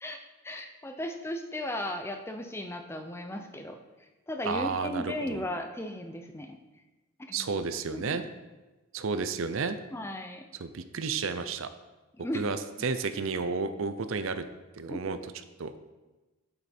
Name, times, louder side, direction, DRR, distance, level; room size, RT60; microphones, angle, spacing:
voice 1, 0.0-6.6 7.3-7.5 7.9-8.2 9.9-10.5 12.2-12.5 14.9-15.0, left 1 dB, 10° left, 6 dB, 0.5 m, -36 dB
voice 2, 4.4-5.4 7.3-8.2 8.9-9.8 10.6-11.7 12.3-14.5 14.8-15.2 15.6-15.7, right 4 dB, 65° right, 11 dB, 0.6 m, -31 dB
8.1 x 7.0 x 4.4 m, 1.1 s
head